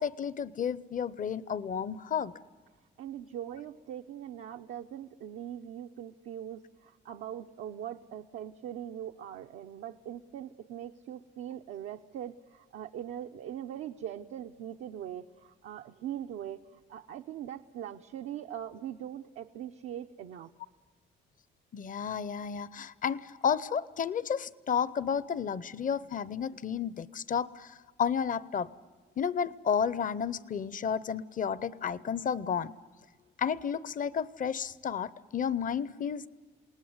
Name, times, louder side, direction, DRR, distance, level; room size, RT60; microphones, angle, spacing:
voice 1, 0.0-2.3 21.7-28.7 29.2-32.7 33.4-36.3, left 7 dB, 40° left, 17 dB, 0.7 m, -32 dB
voice 2, 3.0-20.5, right 10 dB, 85° right, 4 dB, 0.7 m, -41 dB
28.5 x 18.5 x 8.0 m, 1.4 s
cardioid pair, 90°, 20 cm